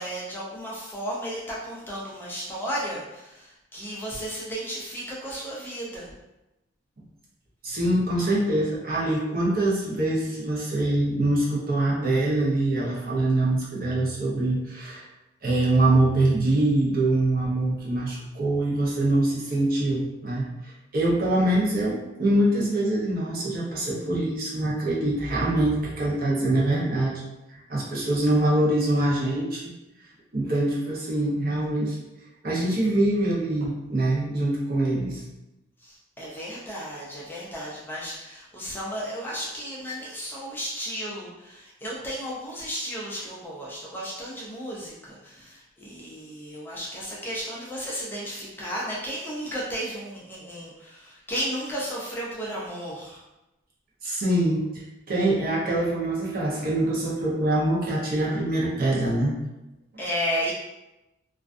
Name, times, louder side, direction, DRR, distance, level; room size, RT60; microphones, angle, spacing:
voice 1, 0.0-6.1 35.8-53.2 60.0-60.5, equal, 10° left, -6 dB, 0.4 m, -34 dB
voice 2, 7.6-15.1 15.4-27.2 27.5-29.6 30.3-32.0 32.4-35.2 54.0-59.3, right 1 dB, 50° right, -5 dB, 0.6 m, -24 dB
2.3 x 2.2 x 2.4 m, 0.97 s
head